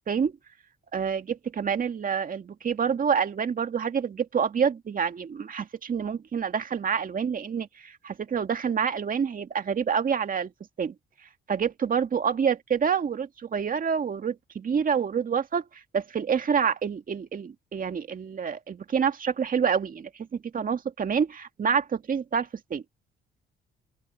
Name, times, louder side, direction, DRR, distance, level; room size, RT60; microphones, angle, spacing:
voice 1, 0.9-10.5 10.8-10.9 11.5-15.7 15.9-22.8, right 7 dB, 45° right, 2.0 m, -27 dB
open air
cardioid pair, 90°, 20 cm